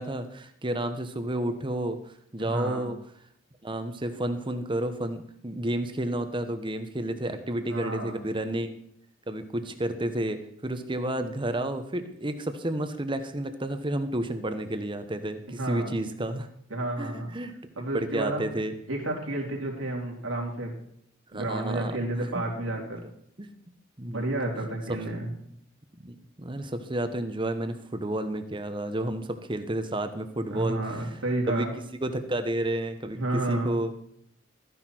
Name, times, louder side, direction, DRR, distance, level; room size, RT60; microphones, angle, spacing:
voice 1, 0.0-2.0 2.3-3.0 3.6-8.8 9.3-16.5 17.0-17.5 17.9-18.7 21.3-22.4 23.4-23.5 24.0-24.3 26.0-31.1 31.5-31.7 32.0-33.9, right 1 dB, 25° right, 8 dB, 1.1 m, -31 dB
voice 2, 2.4-2.9 7.7-8.2 15.6-15.9 16.7-17.3 17.8-18.4 18.9-20.7 21.3-23.0 24.1-25.3 30.5-31.7 33.1-33.8, right 2 dB, 85° right, -1 dB, 3.4 m, -31 dB
14.0 x 10.0 x 4.5 m, 0.71 s
head